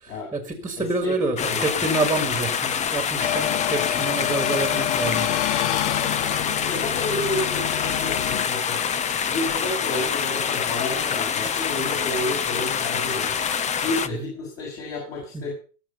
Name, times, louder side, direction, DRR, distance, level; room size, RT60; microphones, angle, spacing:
voice 1, 0.0-5.3 14.1-14.3 15.3-15.4, right 3 dB, 10° right, 7 dB, 2.0 m, -27 dB
voice 2, 0.8-1.8 6.6-8.8 9.3-13.4 13.8-15.5, left 2 dB, 40° left, -2 dB, 6.9 m, -31 dB
sound 1, 1.4-14.1, left 7 dB, 20° left, 0.7 m, -26 dB
sound 2, 3.2-8.5, left 15 dB, 65° left, 0.7 m, -28 dB
19.0 x 7.6 x 5.5 m, 0.38 s
supercardioid pair, 130°, 37 cm